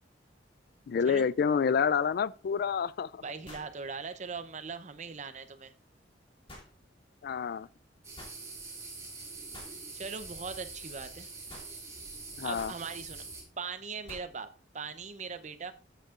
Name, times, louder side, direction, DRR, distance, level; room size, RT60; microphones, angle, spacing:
voice 1, 0.9-3.2 7.2-7.7 12.4-12.7, left 6 dB, 55° left, 0.3 m, -28 dB
sound 1, 2.2-2.3 3.4-3.8 6.5-6.7 8.2-8.4 9.5-9.8 11.5-11.7 12.5-12.8 14.1-14.3, left 1 dB, 30° left, 2.8 m, -48 dB
voice 2, 3.2-5.7 9.9-11.3 12.4-13.2 13.6-15.7, right 5 dB, 40° right, 0.7 m, -40 dB
sound 2, 8.0-13.4, right 3 dB, 15° right, 2.7 m, -44 dB
13.5 x 8.2 x 2.5 m
head